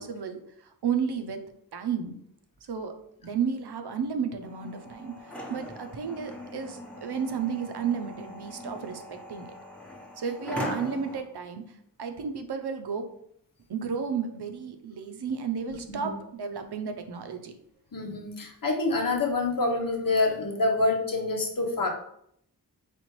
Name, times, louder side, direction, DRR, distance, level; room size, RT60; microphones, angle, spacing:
voice 1, 0.0-1.4 1.7-2.1 2.6-2.9 3.2-9.5 10.2-13.1 13.7-17.5, right 6 dB, 85° right, 6 dB, 0.6 m, -33 dB
sound 1, 4.4-11.2, equal, 5° left, 0.8 m, -40 dB
voice 2, 15.7-16.2 17.9-21.9, left 3 dB, 60° left, 1 dB, 1.0 m, -27 dB
4.2 x 3.5 x 3.0 m, 0.70 s
wide cardioid pair, 55°, 38 cm